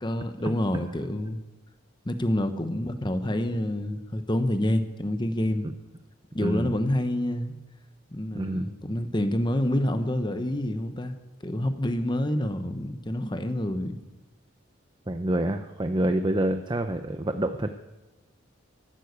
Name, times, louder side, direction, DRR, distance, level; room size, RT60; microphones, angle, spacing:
voice 1, 0.0-1.4 2.0-5.7 6.3-7.6 8.1-11.1 11.4-14.0, left 1 dB, 25° left, 9 dB, 1.0 m, -27 dB
voice 2, 6.4-6.7 8.3-8.7 15.1-17.7, right 1 dB, 25° right, 7 dB, 0.6 m, -27 dB
14.0 x 12.0 x 8.1 m, 1.1 s
head